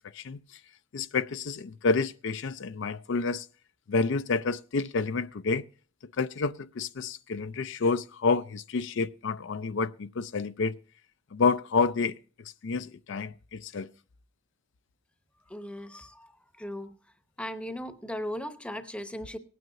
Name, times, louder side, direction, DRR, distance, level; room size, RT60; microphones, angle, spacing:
voice 1, 0.1-0.6 0.9-3.5 3.9-5.7 6.2-10.8 11.3-12.2 12.6-13.9, left 4 dB, 60° left, 0.5 m, -29 dB
voice 2, 15.5-16.3 16.6-16.9 17.4-19.4, equal, 5° left, 0.8 m, -37 dB
19.0 x 9.3 x 2.6 m
head